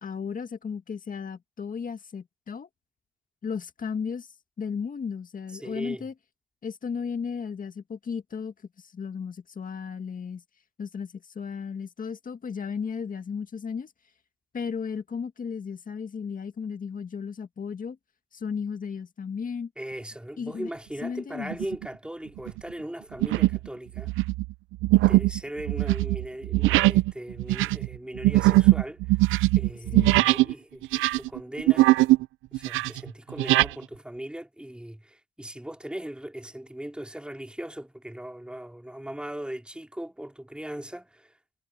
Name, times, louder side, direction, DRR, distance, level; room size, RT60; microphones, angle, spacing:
voice 1, 0.0-2.7 3.4-4.3 4.6-6.1 6.6-10.4 10.8-13.9 14.5-18.0 18.3-19.7 20.4-20.7 21.0-21.6 29.9-30.3, left 6 dB, 45° left, 2.0 m, -34 dB
voice 2, 5.5-6.0 19.8-24.1 24.9-29.2 29.6-31.9 32.5-41.4, right 1 dB, 5° right, 3.7 m, -39 dB
sound 1, 21.5-21.9 22.4-22.6 23.2-23.7 24.0-30.5 30.8-32.2 32.5-33.7, right 18 dB, 85° right, 0.4 m, -21 dB
cardioid pair, 90°, 20 cm